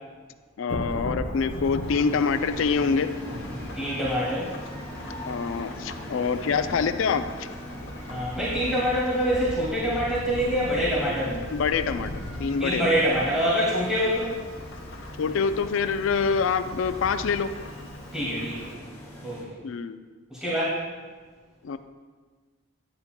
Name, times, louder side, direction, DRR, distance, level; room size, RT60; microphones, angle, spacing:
voice 1, 0.6-3.1 5.3-7.5 11.5-12.1 12.4-12.9 15.2-17.5 19.6-20.0 21.6-21.8, left 5 dB, 80° left, 11 dB, 0.4 m, -25 dB
Thunderstorm / Rain, 0.7-18.7, left 1 dB, 65° left, 0.8 m, -39 dB
sound 1, 1.8-19.4, equal, 10° left, 1.6 m, -41 dB
voice 2, 3.7-4.5 8.1-11.4 12.6-14.4 18.1-18.7 19.2-19.4 20.3-20.8, equal, 5° right, -9 dB, 2.1 m, -25 dB
9.8 x 9.7 x 2.2 m, 1.4 s
head